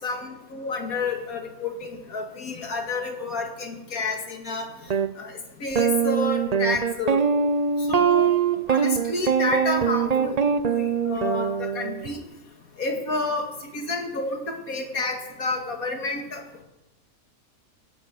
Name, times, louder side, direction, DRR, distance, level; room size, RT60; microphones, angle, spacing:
voice 1, 0.0-4.7 5.2-7.2 7.8-8.4 8.7-10.4 10.6-12.2 12.8-13.5 13.7-16.4, left 3 dB, 80° left, 3 dB, 2.5 m, -30 dB
sound 1, 4.9-5.1 5.8-12.1, right 7 dB, 40° right, 0.6 m, -22 dB
15.5 x 11.0 x 6.3 m, 0.93 s
omnidirectional pair, 1.5 m